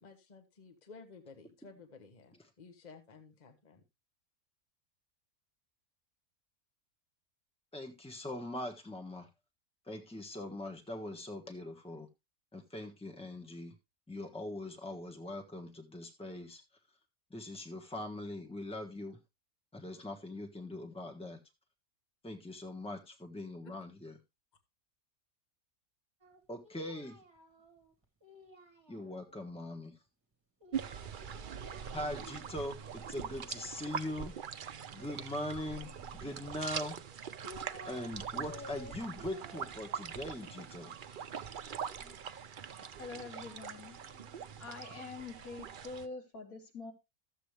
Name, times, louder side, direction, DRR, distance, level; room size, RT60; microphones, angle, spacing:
voice 1, 0.0-3.8 23.6-23.7, left 4 dB, 30° left, 6 dB, 1.3 m, -54 dB
voice 2, 7.7-9.3 9.8-12.1 12.5-13.7 14.1-16.6 17.3-19.2 19.7-21.4 22.2-24.2 26.5-27.2 28.9-30.0 31.9-34.4 34.9-37.0 37.8-40.9, left 1 dB, 5° left, 4 dB, 1.3 m, -41 dB
Singing, 26.2-29.5 30.6-32.6 32.9-34.2 35.6-36.5 37.1-38.1 38.3-42.0 42.8-45.0, left 1 dB, 20° right, 1.9 m, -55 dB
sound 1, 30.7-46.1, right 7 dB, 55° right, 0.6 m, -43 dB
voice 3, 42.5-44.0 44.6-46.9, left 4 dB, 80° left, 2 dB, 2.8 m, -46 dB
13.5 x 7.8 x 3.3 m, 0.23 s
omnidirectional pair, 1.5 m